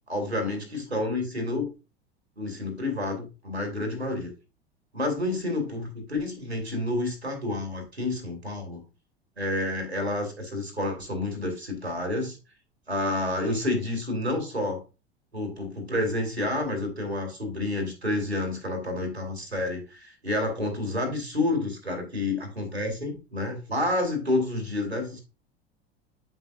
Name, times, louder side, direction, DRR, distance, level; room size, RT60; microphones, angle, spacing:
voice 1, 0.1-1.7 2.4-4.3 4.9-8.8 9.4-12.4 12.9-14.8 15.3-25.2, left 2 dB, 90° right, 4 dB, 2.0 m, -29 dB
7.7 x 5.4 x 2.4 m, 0.31 s
figure-of-eight pair, 80°, 31 cm